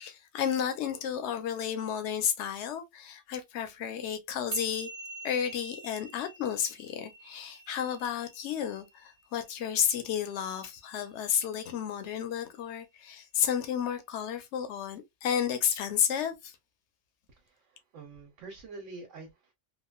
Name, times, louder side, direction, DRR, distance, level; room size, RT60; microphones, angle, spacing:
voice 1, 0.0-4.9 5.2-16.5, left 9 dB, 70° left, 0.9 m, -32 dB
sound 1, 4.5-11.1, right 3 dB, 55° right, 0.9 m, -45 dB
voice 2, 17.4-19.5, right 3 dB, 85° right, 1.1 m, -46 dB
3.0 x 2.2 x 2.2 m
omnidirectional pair, 1.2 m